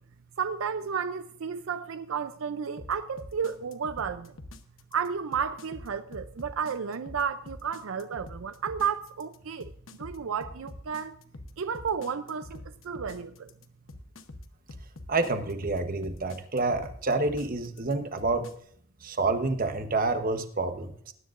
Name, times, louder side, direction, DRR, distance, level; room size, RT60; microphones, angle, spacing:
voice 1, 0.4-4.3 4.9-9.7 10.0-11.1 11.6-13.5, right 6 dB, 80° right, 0.5 m, -32 dB
sound 1, 2.8-18.5, left 1 dB, 70° left, 0.9 m, -45 dB
voice 2, 15.1-18.5 19.0-21.1, right 3 dB, 45° right, 1.1 m, -28 dB
19.5 x 10.0 x 2.5 m
head